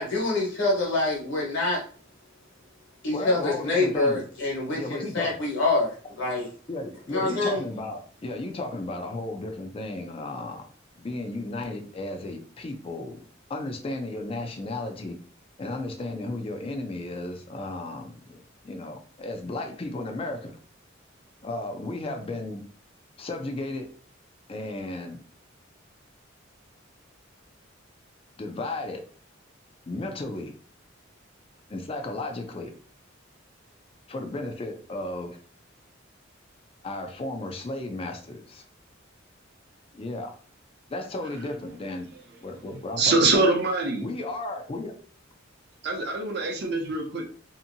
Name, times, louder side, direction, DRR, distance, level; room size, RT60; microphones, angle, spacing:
voice 1, 0.0-1.8 3.0-6.5 7.1-7.6, left 2 dB, 65° left, 1.3 m, -26 dB
voice 2, 3.1-4.2 4.7-5.4 6.7-10.7 11.0-13.2 13.5-15.2 15.6-20.6 21.4-22.6 23.2-23.9 24.5-25.2 28.4-29.0 29.9-30.5 31.7-32.7 34.1-35.4 36.8-38.6 39.9-40.3 40.9-42.1 42.4-43.5 44.0-45.0, left 2 dB, 30° left, 0.4 m, -34 dB
voice 3, 42.7-44.1 45.8-47.2, right 3 dB, 60° right, 0.7 m, -24 dB
2.8 x 2.6 x 2.6 m
head